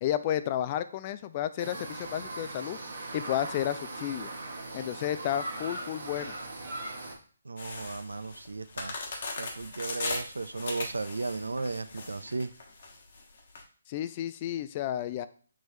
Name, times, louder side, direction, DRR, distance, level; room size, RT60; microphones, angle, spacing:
voice 1, 0.0-2.8 3.1-4.3 4.7-6.3 13.9-15.3, left 11 dB, 30° left, 13 dB, 0.3 m, -32 dB
sound 1, 1.6-7.1, right 2 dB, 60° right, 1.2 m, -39 dB
voice 2, 7.4-9.0 9.4-12.5, right 3 dB, 75° right, 12 dB, 0.3 m, -35 dB
sound 2, 7.6-13.6, left 3 dB, 50° left, 1.2 m, -38 dB
6.1 x 3.1 x 2.7 m, 0.41 s
figure-of-eight pair, 145°, 0 cm